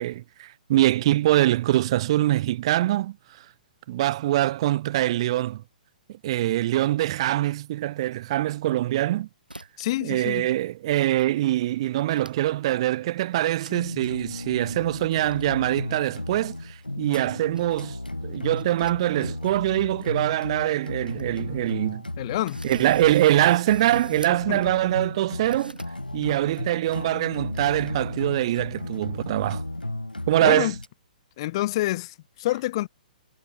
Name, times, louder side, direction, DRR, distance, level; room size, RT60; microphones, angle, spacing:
voice 1, 0.0-3.2 3.9-5.6 6.1-9.3 10.0-18.0 18.2-22.0 22.6-25.8 26.1-29.6 30.3-30.7, right 14 dB, 40° right, 0.7 m, -23 dB
sound 1, 9.5-10.0 10.3-10.8 11.2-11.3 11.6-12.6 12.9-13.1 13.6-13.8 14.1-14.2 14.8-15.4 16.6-17.7 18.3-19.4 19.7-19.8 20.3-20.4 20.7-20.8 21.0-21.3 21.8-21.9 22.5-24.4 25.5-25.9, right 1 dB, 85° right, 6.7 m, -47 dB
voice 2, 9.8-10.5 22.2-22.6 24.5-24.6 30.4-30.8 31.4-32.9, left 16 dB, 40° left, 2.2 m, -27 dB
sound 2, 13.7-30.9, left 2 dB, 80° left, 4.9 m, -34 dB
figure-of-eight pair, 120°, 5 cm